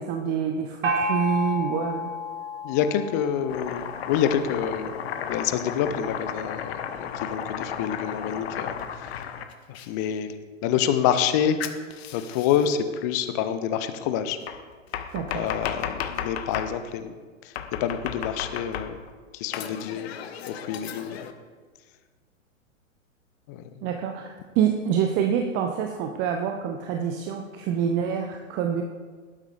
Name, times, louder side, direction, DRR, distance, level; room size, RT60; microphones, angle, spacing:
voice 1, 0.0-2.1 15.1-15.5 23.8-28.8, right 8 dB, 25° right, 5 dB, 0.7 m, -26 dB
Gong, 0.8-4.3, left 1 dB, 70° right, 3.7 m, -31 dB
voice 2, 2.6-4.9 5.3-9.3 9.7-10.4 10.6-11.6 12.1-14.4 15.3-17.1 17.4-19.0 19.3-20.1 20.5-21.3 23.5-23.9, left 9 dB, 15° left, 10 dB, 0.3 m, -27 dB
Domestic sounds home sounds, 3.5-9.9 11.6-12.7 14.5-16.7 17.6-19.1 19.5-21.3, left 8 dB, 50° left, 1.1 m, -34 dB
18.0 x 12.0 x 3.3 m, 1.5 s
figure-of-eight pair, 105°, 40 cm